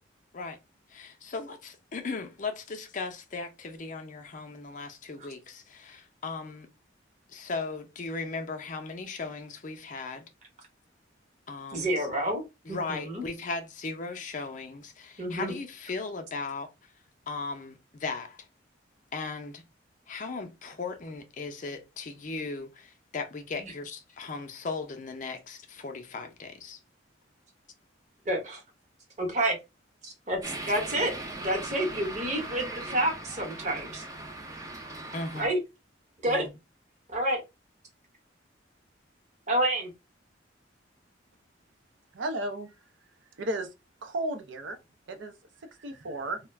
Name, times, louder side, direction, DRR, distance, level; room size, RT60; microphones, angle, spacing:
voice 1, 0.9-6.7 7.3-10.3 11.5-11.9 12.7-16.7 17.3-18.5 19.1-19.6 20.1-26.8 35.1-35.5 36.3-36.5, left 4 dB, 40° left, 0.5 m, -37 dB
voice 2, 11.7-13.2 15.2-15.6 23.6-23.7 28.3-28.6 29.2-29.6 30.0-30.4 30.6-31.1 31.4-34.0 35.3-35.6 36.2-36.5 37.1-37.4 39.5-39.9, right 1 dB, 40° right, 0.9 m, -29 dB
sound 1, 30.4-35.5, right 2 dB, 20° right, 0.4 m, -39 dB
voice 3, 42.1-42.7 43.4-43.7 44.0-44.8 45.1-45.3 45.8-46.4, right 1 dB, 75° right, 0.5 m, -33 dB
2.3 x 2.1 x 3.3 m
head